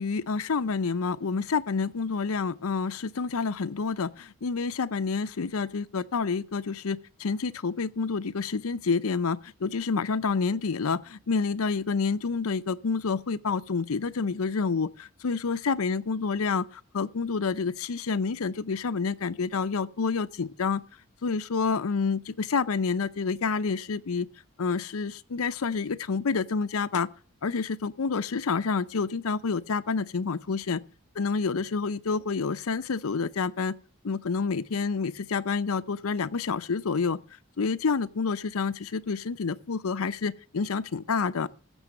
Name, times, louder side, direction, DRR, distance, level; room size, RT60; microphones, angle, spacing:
voice 1, 0.0-20.8 21.2-24.3 24.6-27.1 27.4-30.8 31.2-33.8 34.0-37.2 37.6-41.5, left 5 dB, 85° left, 0.6 m, -28 dB
14.5 x 7.0 x 6.5 m
head